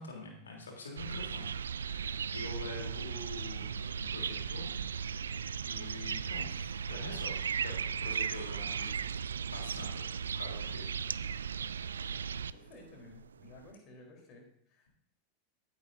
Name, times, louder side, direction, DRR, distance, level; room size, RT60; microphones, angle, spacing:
voice 1, 0.0-1.5 1.8-4.7 5.6-6.6 6.9-9.0 9.5-10.1 10.3-10.9, left 2 dB, 70° left, 0 dB, 3.4 m, -45 dB
sound 1, 1.0-13.7, right 7 dB, 70° right, 0.3 m, -37 dB
voice 2, 12.5-14.9, left 2 dB, 40° left, 0 dB, 3.9 m, -54 dB
15.5 x 9.6 x 2.7 m, 0.72 s
figure-of-eight pair, 85°, 0 cm